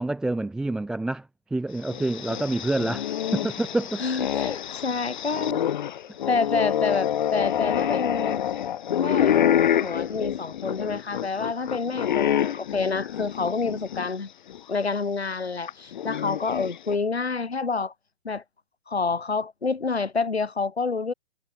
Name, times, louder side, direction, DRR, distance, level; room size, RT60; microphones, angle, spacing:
voice 1, 0.0-4.0, right 2 dB, ahead, 0.7 m, -27 dB
sound 1, 1.8-14.1 14.5-14.6 15.7-16.9, left 10 dB, 50° left, 1.5 m, -27 dB
voice 2, 4.0-5.6 6.3-8.4 9.0-14.3 14.7-17.9 18.2-18.4 18.9-21.1, left 4 dB, 80° left, 3.2 m, -28 dB
figure-of-eight pair, 135°, 31 cm